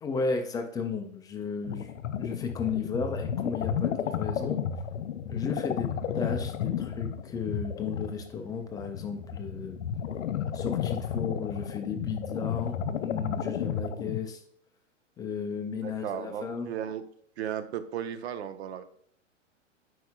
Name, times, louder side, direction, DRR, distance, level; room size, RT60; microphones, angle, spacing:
voice 1, 0.0-1.9 2.2-4.6 5.3-5.9 6.1-9.8 10.5-14.4 15.2-16.7, left 5 dB, 10° left, 5 dB, 0.4 m, -34 dB
sound 1, 1.6-14.2, left 8 dB, 75° left, 0.6 m, -32 dB
voice 2, 15.8-17.0 17.4-18.8, right 9 dB, 60° right, 11 dB, 0.8 m, -35 dB
9.1 x 4.7 x 2.3 m, 0.65 s
hypercardioid pair, 110°, 38 cm